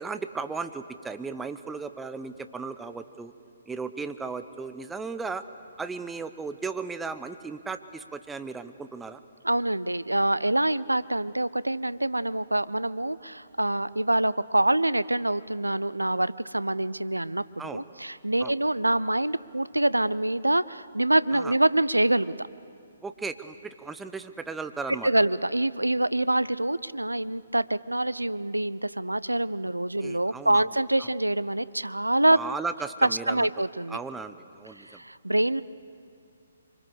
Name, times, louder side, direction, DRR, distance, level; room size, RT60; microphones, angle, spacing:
voice 1, 0.0-3.3 3.7-5.4 5.8-9.2 17.6-17.8 18.4-18.5 21.3-21.5 23.0-25.1 30.0-30.7 31.0-31.1 32.3-33.5 33.9-35.0, right 4 dB, 5° right, 10 dB, 0.7 m, -36 dB
voice 2, 9.4-22.5 25.0-32.4 33.0-34.0 34.8-35.6, right 1 dB, 80° right, 18 dB, 0.5 m, -25 dB
24.5 x 24.5 x 6.8 m, 2.4 s
figure-of-eight pair, 130°, 0 cm